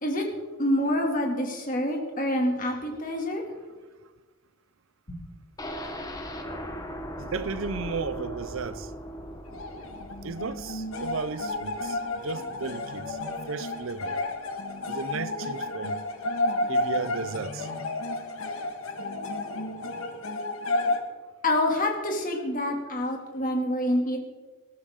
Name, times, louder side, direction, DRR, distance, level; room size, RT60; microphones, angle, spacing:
voice 1, 0.6-3.4 21.4-24.2, left 1 dB, 40° left, 2.5 m, -26 dB
sound 1, 5.6-13.5 13.8-13.9 14.3-14.4, equal, 15° left, 1.2 m, -39 dB
voice 2, 7.2-8.9 10.2-13.2 13.5-14.2 14.9-16.0 16.7-17.7, right 4 dB, 65° right, 0.6 m, -34 dB
sound 2, 9.5-21.0, left 2 dB, 70° left, 1.6 m, -31 dB
19.5 x 13.5 x 3.7 m
head